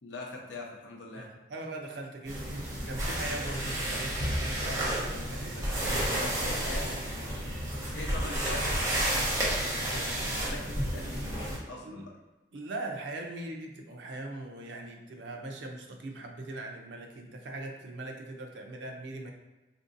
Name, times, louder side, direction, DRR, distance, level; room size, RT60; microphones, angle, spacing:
voice 1, 0.0-1.3 6.2-7.4 7.9-12.2, left 2 dB, 85° left, -1 dB, 0.7 m, -42 dB
voice 2, 1.1-6.4 11.8-12.1 12.5-19.3, right 2 dB, 80° right, 2 dB, 0.5 m, -41 dB
sound 1, 2.3-11.6, right 1 dB, 20° right, 0.8 m, -31 dB
3.6 x 2.6 x 2.6 m, 1.0 s
head